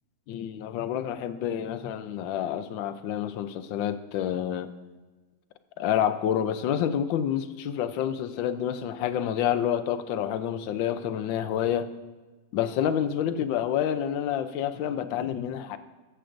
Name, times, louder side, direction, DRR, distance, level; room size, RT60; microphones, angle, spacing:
voice 1, 0.3-4.7 5.8-11.9 12.5-15.8, left 9 dB, 80° left, 10 dB, 1.3 m, -28 dB
21.5 x 7.8 x 2.6 m, 1.2 s
omnidirectional pair, 2.1 m